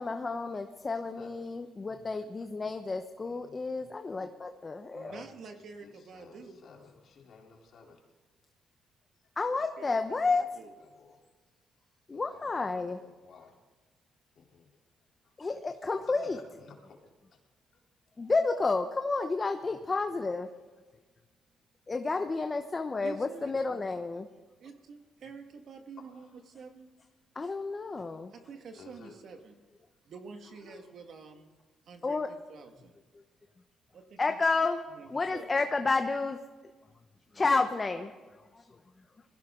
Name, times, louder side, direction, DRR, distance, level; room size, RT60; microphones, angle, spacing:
voice 1, 0.0-5.2 9.4-10.5 12.1-13.0 15.4-16.4 18.2-20.5 21.9-24.3 27.3-28.3 30.7-30.8 32.0-32.3 34.2-34.8 35.1-36.4 37.3-38.8, left 3 dB, 30° left, 6 dB, 0.9 m, -31 dB
voice 2, 1.2-1.7 3.2-3.6 5.8-8.0 9.8-10.4 10.8-11.2 12.1-13.6 14.4-14.8 15.2-15.3 16.1-17.4 17.7-17.8 19.8-19.9 21.0-21.1 22.9-23.0 24.6-24.7 26.0-26.3 28.7-29.2 36.9-37.0, left 5 dB, 60° left, 0 dB, 3.6 m, -55 dB
voice 3, 4.9-6.6 9.5-10.0 10.3-10.7 23.0-23.5 24.6-26.9 28.5-29.6 30.1-31.5 31.9-32.9 33.9-34.4 34.9-35.5, right 4 dB, 60° right, 5 dB, 1.9 m, -48 dB
21.0 x 16.0 x 3.8 m, 1.4 s
cardioid pair, 90°, 0 cm